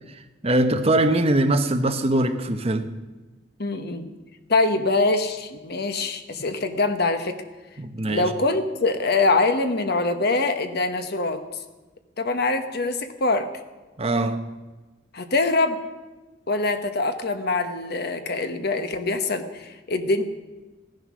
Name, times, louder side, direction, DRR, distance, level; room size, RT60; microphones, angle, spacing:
voice 1, 0.4-2.9 7.8-8.3 14.0-14.4, right 1 dB, 30° right, 0.9 m, -22 dB
voice 2, 3.6-4.1 4.5-7.4 8.1-11.4 12.2-13.5 15.1-15.8 16.5-20.2, left 3 dB, 55° left, 1.1 m, -24 dB
15.5 x 10.5 x 6.3 m
head